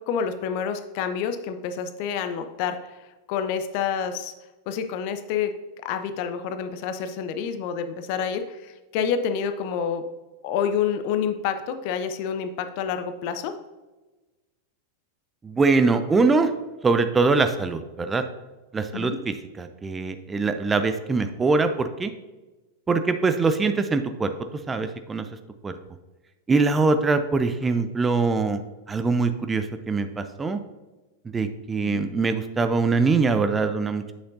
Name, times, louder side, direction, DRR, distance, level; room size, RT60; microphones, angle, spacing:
voice 1, 0.0-2.8 3.3-4.3 4.7-5.5 5.8-10.0 10.4-13.5 18.9-19.2 31.8-32.0, left 7 dB, 45° left, 9 dB, 0.6 m, -28 dB
voice 2, 15.4-16.5 16.8-18.2 18.7-22.1 22.9-24.3 24.7-25.3 25.6-25.7 26.5-28.6 28.9-30.6 31.3-34.1, right 4 dB, 15° right, 9 dB, 0.4 m, -23 dB
8.0 x 6.4 x 2.6 m, 1.2 s
figure-of-eight pair, 90°, 0 cm